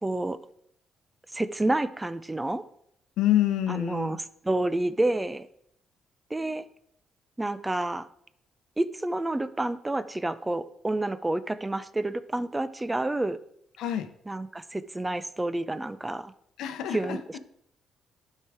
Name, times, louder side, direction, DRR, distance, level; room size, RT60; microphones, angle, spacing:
voice 1, 0.0-0.4 1.3-2.6 3.7-4.2 4.4-5.5 6.3-6.6 7.4-8.1 8.8-13.4 14.3-16.3 16.9-17.4, right 2 dB, 15° right, 14 dB, 0.5 m, -29 dB
voice 2, 3.2-4.1 13.8-14.1 16.6-17.2, left 12 dB, 85° left, 9 dB, 0.8 m, -26 dB
11.5 x 4.7 x 4.9 m, 0.71 s
cardioid pair, 90°, 0 cm